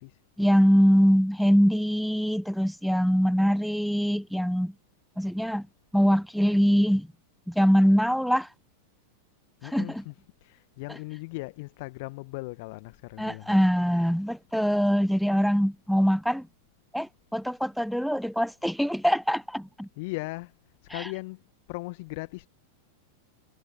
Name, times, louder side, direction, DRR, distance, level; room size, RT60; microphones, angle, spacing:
voice 1, 0.4-4.7 5.2-5.7 5.9-7.1 7.5-8.5 9.6-10.0 10.9-11.0 13.2-16.5 16.9-19.9 20.9-21.1, equal, ahead, 0.3 m, -23 dB
voice 2, 9.6-10.1 10.4-13.5 20.0-20.5 20.9-21.4 21.7-22.5, left 25 dB, 50° left, 1.6 m, -38 dB
figure-of-eight pair, 90°, 0 cm